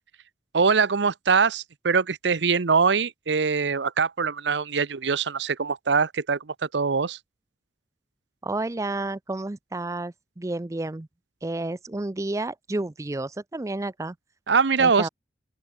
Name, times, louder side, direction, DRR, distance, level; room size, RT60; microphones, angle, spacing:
voice 1, 0.5-7.2 14.5-15.1, right 5 dB, 80° right, 0.8 m, -23 dB
voice 2, 8.4-11.1 11.4-14.1 14.8-15.1, right 2 dB, 15° right, 0.4 m, -31 dB
open air
head